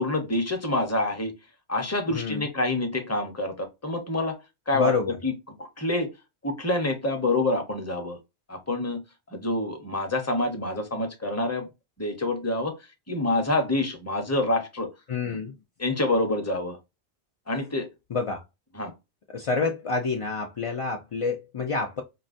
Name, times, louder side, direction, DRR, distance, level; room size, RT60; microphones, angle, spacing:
voice 1, 0.0-1.3 1.7-4.4 4.7-4.9 5.2-6.1 6.4-8.2 8.5-9.0 9.3-11.7 12.0-12.8 13.1-14.9 15.8-16.8 17.5-17.9 18.7-18.9, left 2 dB, 15° left, 0.7 m, -27 dB
voice 2, 2.1-2.5 4.7-5.2 15.1-15.5 18.1-18.4 19.3-22.0, left 4 dB, 55° left, 0.3 m, -28 dB
4.7 x 2.1 x 2.5 m
omnidirectional pair, 1.2 m